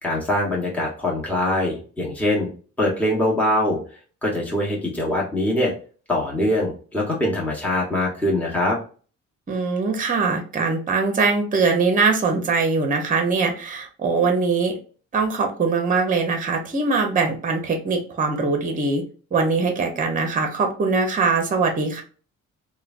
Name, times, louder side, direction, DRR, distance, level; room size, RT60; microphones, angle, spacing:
voice 1, 0.0-2.5 2.8-3.8 4.2-5.7 6.1-8.8, left 1 dB, 5° left, -4 dB, 1.1 m, -23 dB
voice 2, 9.5-14.7 15.1-19.0 19.3-22.0, right 4 dB, 25° right, 4 dB, 0.7 m, -22 dB
3.1 x 2.2 x 2.4 m, 0.39 s
cardioid pair, 90°, 30 cm